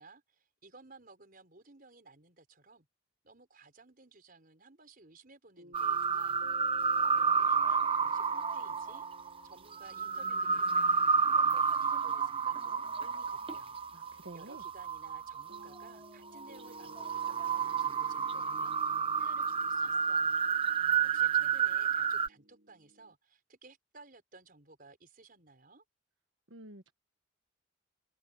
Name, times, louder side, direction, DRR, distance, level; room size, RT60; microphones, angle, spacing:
voice 1, 0.0-2.9 3.2-6.5 7.1-13.8 14.3-20.4 21.0-25.8, right 3 dB, 50° right, 5.2 m, -57 dB
sound 1, 5.6-14.3 15.5-23.1, right 1 dB, 70° right, 2.8 m, -57 dB
sound 2, 5.7-15.8 16.4-22.3, right 6 dB, 30° right, 0.8 m, -30 dB
sound 3, 6.4-20.8, equal, ahead, 4.4 m, -65 dB
voice 2, 13.9-14.6 26.5-26.9, right 2 dB, 85° right, 1.4 m, -49 dB
head